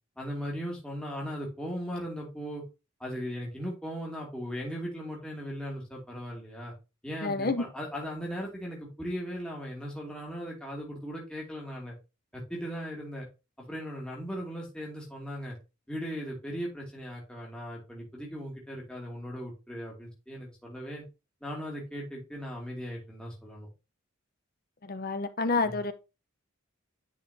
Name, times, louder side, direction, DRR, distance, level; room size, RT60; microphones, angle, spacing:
voice 1, 0.2-2.6 3.0-6.7 7.0-11.9 12.3-13.3 13.6-15.6 15.9-21.0 21.4-23.7 25.6-25.8, equal, 5° left, 2.6 m, -38 dB
voice 2, 7.2-7.6 24.8-25.9, left 3 dB, 45° left, 0.8 m, -29 dB
10.0 x 4.9 x 2.8 m
head